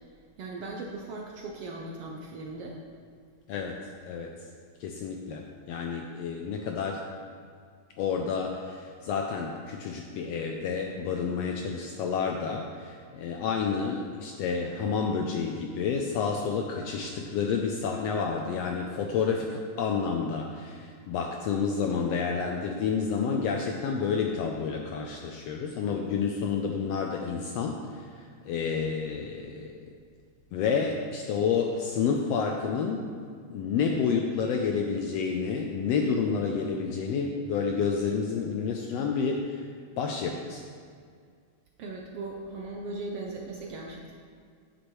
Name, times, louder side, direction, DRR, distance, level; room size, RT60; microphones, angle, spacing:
voice 1, 0.4-2.8 41.8-44.1, right 2 dB, 70° right, 0 dB, 1.4 m, -38 dB
voice 2, 4.0-4.3 4.8-7.0 8.0-28.0 28.5-29.8 30.5-33.1 33.5-39.7 40.0-40.6, left 5 dB, 80° left, 2 dB, 1.5 m, -29 dB
9.6 x 9.2 x 3.1 m, 2.1 s
omnidirectional pair, 3.4 m